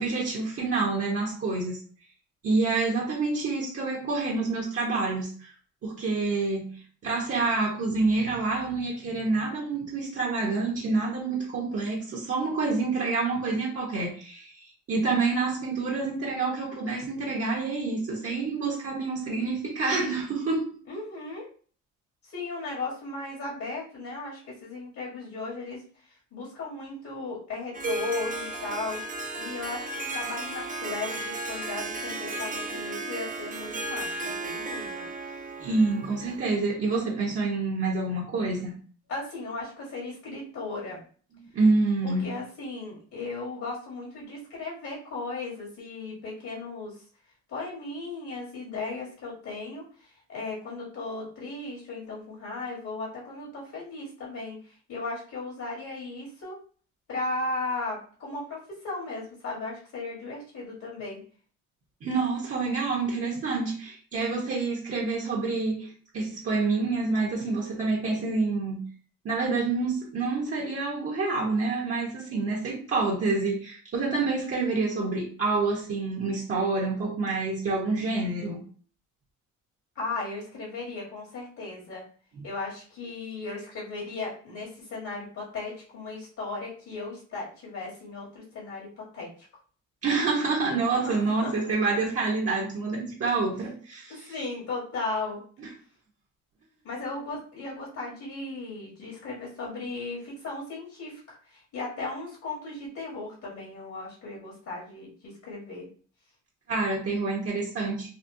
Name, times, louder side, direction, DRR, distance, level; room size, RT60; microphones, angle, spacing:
voice 1, 0.0-1.8 2.4-5.5 5.8-14.5 14.9-20.7 35.6-38.8 41.4-42.3 62.0-68.8 69.2-78.6 82.4-82.5 90.0-94.3 95.6-95.7 106.7-108.1, right 3 dB, 50° right, -3 dB, 1.2 m, -27 dB
voice 2, 20.9-21.5 22.2-25.8 26.3-29.0 29.4-35.0 39.1-41.0 42.0-47.0 47.5-56.6 57.1-61.2 79.9-82.0 82.4-89.3 91.0-91.6 94.1-95.4 96.8-105.9, left 3 dB, 65° left, -4 dB, 1.7 m, -36 dB
Harp, 27.7-36.5, right 2 dB, 25° right, 0.6 m, -34 dB
4.1 x 2.4 x 2.7 m, 0.43 s
cardioid pair, 90°, 30 cm